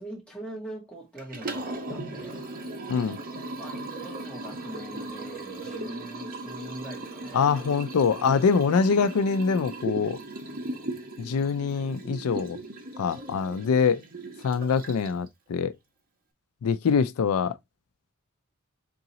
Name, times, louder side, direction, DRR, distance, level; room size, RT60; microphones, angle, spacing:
voice 1, 0.0-2.5 3.6-7.5 8.3-8.5, right 1 dB, 5° left, 2.0 m, -42 dB
Liquid, 1.2-15.3, right 2 dB, 45° right, 1.1 m, -37 dB
voice 2, 7.3-10.2 11.2-12.6 13.0-14.0 14.4-15.7 16.6-17.6, left 5 dB, 75° left, 0.4 m, -24 dB
3.9 x 3.8 x 2.8 m
head